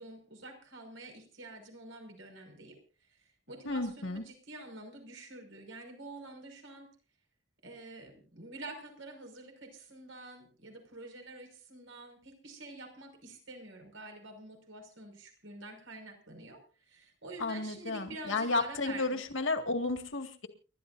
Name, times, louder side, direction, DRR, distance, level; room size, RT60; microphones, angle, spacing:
voice 1, 0.0-6.9 7.6-19.2, right 2 dB, 85° right, 4 dB, 5.8 m, -48 dB
voice 2, 3.7-4.2 17.4-20.5, left 3 dB, 80° left, 6 dB, 2.1 m, -32 dB
30.0 x 13.0 x 2.7 m, 0.36 s
head